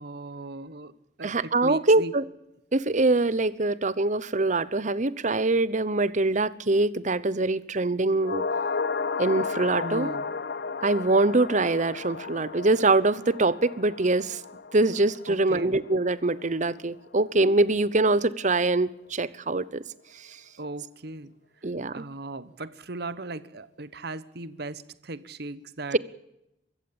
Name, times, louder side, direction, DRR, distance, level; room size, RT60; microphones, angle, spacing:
voice 1, 0.0-2.1 9.8-10.3 15.3-15.7 20.6-21.3 21.9-26.0, right 2 dB, 60° right, 15 dB, 1.1 m, -38 dB
voice 2, 1.2-2.2 2.7-8.4 9.2-10.1 10.8-14.4 14.7-19.8 21.6-22.0, right 2 dB, 40° right, 18 dB, 0.9 m, -24 dB
sound 1, 8.2-16.7 16.9-17.0, left 4 dB, 60° left, 0.8 m, -33 dB
23.5 x 15.0 x 8.7 m, 0.83 s
head